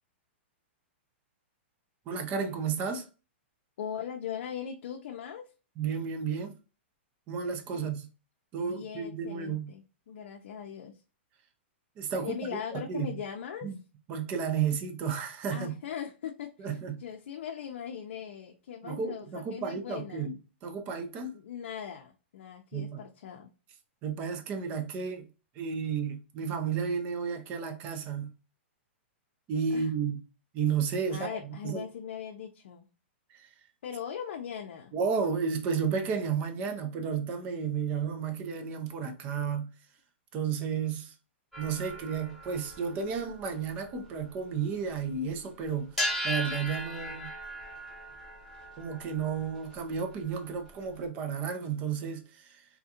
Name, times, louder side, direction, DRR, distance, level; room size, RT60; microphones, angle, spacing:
voice 1, 2.1-3.1 5.8-6.5 7.3-8.1 8.5-9.7 12.0-12.4 12.7-13.2 13.6-13.7 14.1-15.8 16.6-16.9 18.8-20.4 20.6-21.4 22.7-23.0 24.0-25.3 25.6-28.3 29.5-30.2 30.5-31.8 33.3-33.5 34.9-39.7 40.3-41.1 41.6-47.3 48.8-52.7, right 6 dB, 25° right, 0.5 m, -32 dB
voice 2, 3.8-5.5 7.7-7.9 8.6-11.0 12.2-13.7 15.5-20.3 21.3-23.5 29.7-29.9 31.1-32.8 33.8-34.9, left 8 dB, 65° left, 0.5 m, -40 dB
sound 1, 41.5-45.0 45.3-45.4 45.9-51.0, equal, ahead, 0.9 m, -38 dB
3.5 x 2.3 x 2.8 m
hypercardioid pair, 160°, 7 cm